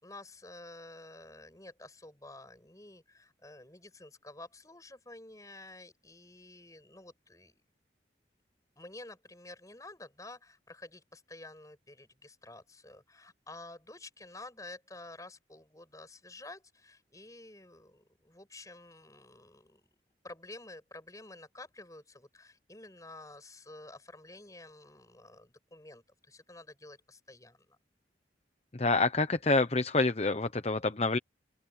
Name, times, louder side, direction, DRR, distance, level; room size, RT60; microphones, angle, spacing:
voice 1, 0.0-7.7 8.8-19.9 20.2-27.8, left 2 dB, 20° left, 7.0 m, -50 dB
voice 2, 28.7-31.2, left 3 dB, 35° left, 0.9 m, -27 dB
open air
head